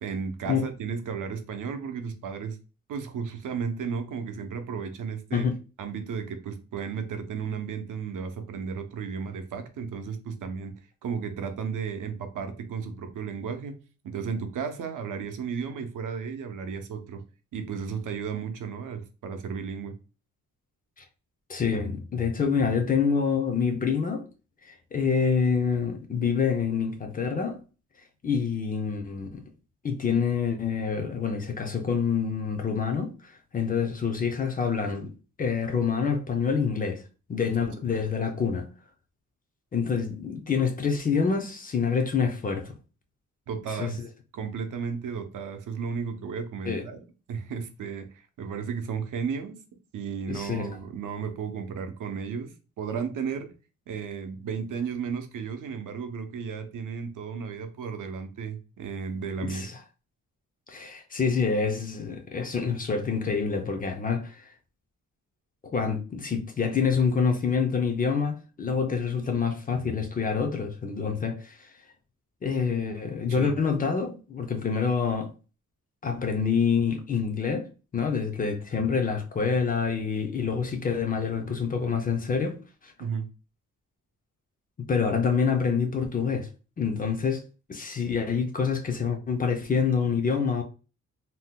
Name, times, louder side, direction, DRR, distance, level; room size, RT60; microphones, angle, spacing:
voice 1, 0.0-2.6 2.9-5.5 5.8-10.7 11.0-13.8 14.0-17.2 17.5-20.0 43.5-44.0 44.3-47.0 47.3-49.6 49.9-53.5 53.9-59.7 73.3-73.5 83.0-83.3, right 6 dB, 75° right, 0.6 m, -34 dB
voice 2, 21.5-24.3 24.7-27.6 28.2-29.4 29.8-35.1 35.4-37.0 37.3-38.7 39.7-42.8 43.7-43.9 46.7-46.9 50.3-50.7 59.4-59.8 60.7-64.5 65.7-71.7 72.4-75.3 76.0-83.1 84.9-86.5 86.8-87.4 87.7-90.6, left 6 dB, 30° left, 0.4 m, -27 dB
2.7 x 2.1 x 3.6 m
wide cardioid pair, 175°, 31 cm